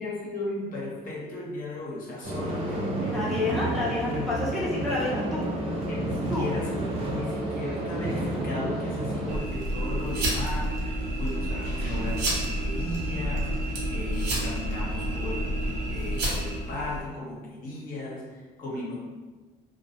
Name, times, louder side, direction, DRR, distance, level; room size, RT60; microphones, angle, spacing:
voice 1, 0.0-3.4 4.0-4.7 5.9-19.0, left 2 dB, 55° left, -4 dB, 0.8 m, -36 dB
sound 1, 2.2-9.4, right 1 dB, 35° right, 0.7 m, -30 dB
voice 2, 3.1-5.5 6.3-6.5, left 2 dB, ahead, -8 dB, 0.6 m, -29 dB
sound 2, 9.3-17.0, right 1 dB, 75° right, 0.7 m, -29 dB
2.2 x 2.1 x 2.7 m, 1.3 s
cardioid pair, 110°, 17 cm